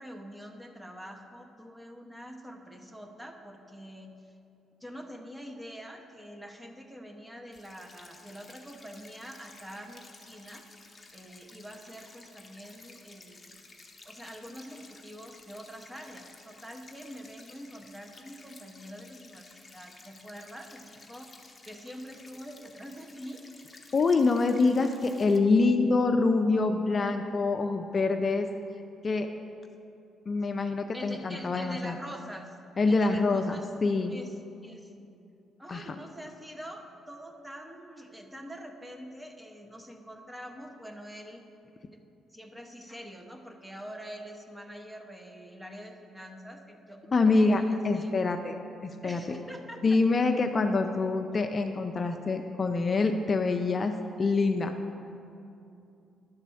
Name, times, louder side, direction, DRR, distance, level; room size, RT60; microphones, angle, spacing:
voice 1, 0.0-4.3 4.8-10.7 11.1-13.7 14.0-23.4 30.9-32.6 32.9-33.7 34.1-34.3 34.6-34.9 35.6-41.4 41.9-42.0 42.3-48.1 49.0-49.8, equal, 10° right, 3 dB, 0.9 m, -45 dB
sound 1, 7.5-25.4, left 3 dB, 25° left, 0.9 m, -53 dB
voice 2, 23.9-28.5 29.0-29.3 30.3-32.0 32.8-34.1 35.7-36.0 47.1-48.6 48.8-49.2 49.8-53.9 54.2-54.7, left 3 dB, 40° left, 5 dB, 0.4 m, -25 dB
10.5 x 4.1 x 7.0 m, 2.7 s
cardioid pair, 90°, 0 cm